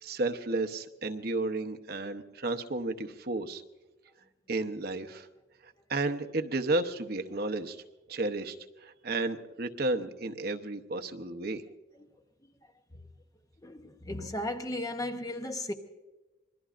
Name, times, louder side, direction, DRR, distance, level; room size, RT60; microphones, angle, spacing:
voice 1, 0.0-3.6 4.5-5.3 5.6-7.8 8.1-11.6, right 2 dB, 50° right, 0.8 m, -32 dB
voice 2, 13.6-15.7, left 1 dB, 15° left, 0.8 m, -36 dB
25.5 x 21.5 x 2.5 m
head